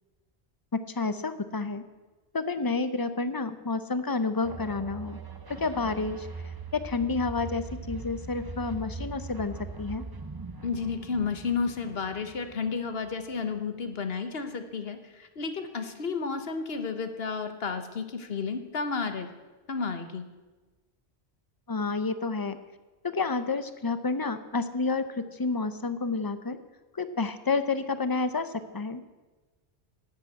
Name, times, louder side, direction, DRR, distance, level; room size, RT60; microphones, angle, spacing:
voice 1, 0.7-1.8 2.3-5.2 5.5-10.0 21.7-22.6 23.0-26.6 26.9-29.1, left 4 dB, 25° left, 11 dB, 0.6 m, -30 dB
sound 1, 4.4-13.5, right 3 dB, 25° right, 0.7 m, -41 dB
voice 2, 10.6-19.3 19.7-20.3, left 5 dB, 65° left, 8 dB, 1.3 m, -32 dB
12.0 x 8.1 x 8.5 m, 1.2 s
omnidirectional pair, 1.1 m